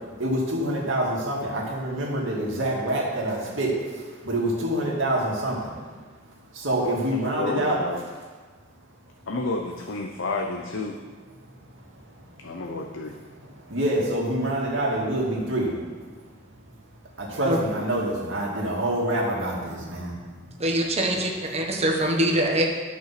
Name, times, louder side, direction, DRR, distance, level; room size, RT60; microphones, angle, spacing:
voice 1, 0.2-3.7 4.2-5.7 6.6-7.8 13.7-15.7 17.2-20.1, right 1 dB, 70° right, -3 dB, 2.5 m, -26 dB
voice 2, 7.1-8.0 9.3-11.0 12.4-13.1, left 3 dB, 70° left, 2 dB, 0.8 m, -30 dB
voice 3, 20.6-22.6, right 1 dB, 30° right, 1 dB, 1.3 m, -23 dB
12.0 x 5.7 x 6.0 m, 1.4 s
head